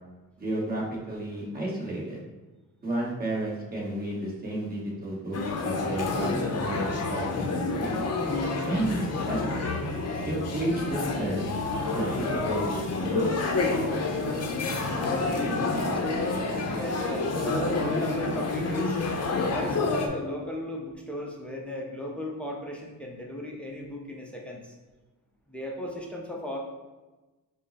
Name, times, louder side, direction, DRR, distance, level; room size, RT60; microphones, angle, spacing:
voice 1, 0.4-2.2 2.8-7.9 8.6-9.6 10.3-11.4 11.9-13.3, right 1 dB, 25° right, -4 dB, 1.1 m, -32 dB
sound 1, 5.3-20.1, left 3 dB, 50° left, 0.6 m, -28 dB
voice 2, 14.9-18.9 19.5-24.7 25.5-26.6, left 1 dB, 5° left, -1 dB, 0.5 m, -36 dB
5.2 x 2.0 x 4.0 m, 1.2 s
wide cardioid pair, 145°, 35 cm